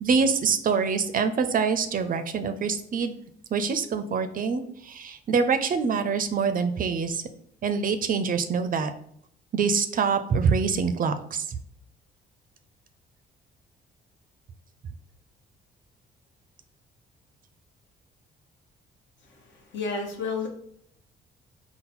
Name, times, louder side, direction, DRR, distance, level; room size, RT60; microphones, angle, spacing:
voice 1, 0.0-3.2 3.5-7.2 7.6-8.9 9.5-11.4, right 5 dB, 45° right, 9 dB, 0.4 m, -25 dB
voice 2, 19.2-20.5, left 4 dB, 65° left, 2 dB, 1.0 m, -32 dB
3.9 x 2.0 x 4.1 m, 0.68 s
cardioid pair, 90°, 20 cm